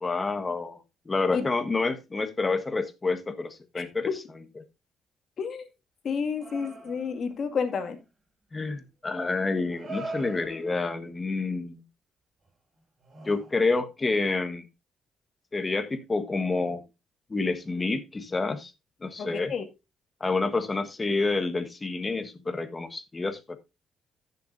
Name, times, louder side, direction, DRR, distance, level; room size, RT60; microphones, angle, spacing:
voice 1, 0.0-4.1 8.5-11.8 13.2-14.6 15.5-16.8 17.3-18.7 19.0-19.5 20.2-23.6, left 3 dB, 25° left, 1.4 m, -28 dB
voice 2, 5.4-5.7 6.0-8.0 19.2-19.6, left 6 dB, 55° left, 2.1 m, -30 dB
sound 1, 6.4-7.3 8.5-8.6 9.6-10.9 12.5-12.6 13.0-13.7, right 2 dB, 40° right, 5.5 m, -41 dB
15.5 x 6.9 x 2.6 m
cardioid pair, 90°, 0 cm